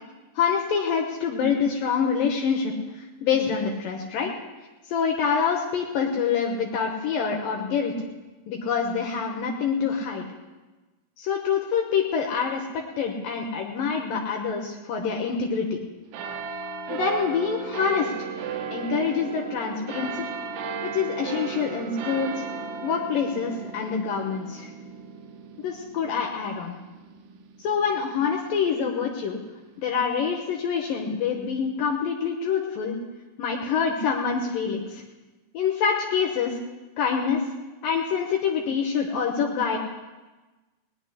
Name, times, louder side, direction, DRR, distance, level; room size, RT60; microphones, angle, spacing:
voice 1, 0.4-4.3 4.9-7.9 8.5-10.3 11.2-15.8 16.9-20.3 20.8-22.4 22.8-24.7 25.6-26.8 27.6-29.4 29.8-32.9 33.4-35.0 35.5-36.6 37.0-37.4 37.8-39.8, left 6 dB, 70° left, 1 dB, 2.7 m, -26 dB
sound 1, 16.1-29.0 29.7-29.8, right 6 dB, 75° right, 2.7 m, -36 dB
19.0 x 6.4 x 10.0 m, 1.2 s
omnidirectional pair, 4.4 m